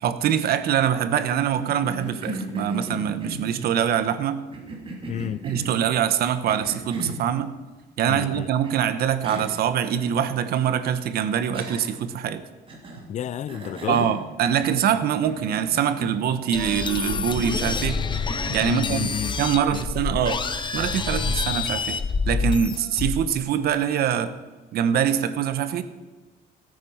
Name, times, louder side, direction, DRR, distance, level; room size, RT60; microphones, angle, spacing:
voice 1, 0.0-4.4 5.4-7.5 8.0-12.4 13.9-18.0 18.5-19.1 19.4-20.4 20.7-22.0 22.3-24.3 24.7-25.8, right 9 dB, 65° right, 1.1 m, -24 dB
Cough, 1.6-3.7 4.5-5.8 6.5-7.3 8.6-8.7 9.2-9.6 10.0-10.1 11.5-12.1 12.7-13.1 13.5-14.9 15.2-16.3 16.6-16.9 17.3-17.7 18.3-18.8, right 2 dB, 30° right, 3.0 m, -36 dB
voice 2, 5.1-5.4 8.1-8.5 13.1-14.1 18.6-19.4 19.7-19.8, left 10 dB, 45° left, 0.5 m, -31 dB
sound 1, 16.5-23.3, left 5 dB, 25° left, 1.0 m, -27 dB
16.5 x 9.2 x 5.7 m
cardioid pair, 110°, 17 cm